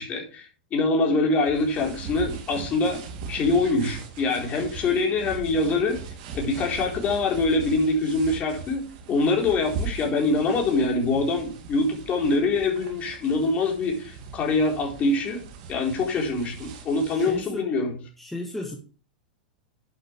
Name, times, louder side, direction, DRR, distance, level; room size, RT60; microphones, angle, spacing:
voice 1, 0.0-3.0 3.3-6.0 6.3-8.8 9.1-15.4 15.7-17.9, left 3 dB, 30° left, 0 dB, 4.1 m, -24 dB
Coat Rustle, 1.4-17.4, right 5 dB, 55° right, 2.9 m, -39 dB
voice 2, 17.1-17.7 18.2-18.8, left 1 dB, 5° left, 2 dB, 1.6 m, -34 dB
11.0 x 8.1 x 3.3 m, 0.38 s
hypercardioid pair, 95°, 5 cm